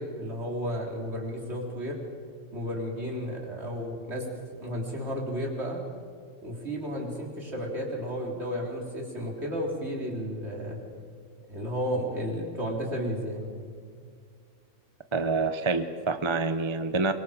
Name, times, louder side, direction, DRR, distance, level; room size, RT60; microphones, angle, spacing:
voice 1, 0.0-2.0 2.5-4.3 4.6-5.8 6.4-10.8 11.5-13.6, equal, 50° right, -1 dB, 3.9 m, -33 dB
voice 2, 15.1-17.1, right 3 dB, 30° right, 10 dB, 0.6 m, -27 dB
24.0 x 23.0 x 5.0 m, 2.1 s
omnidirectional pair, 1.4 m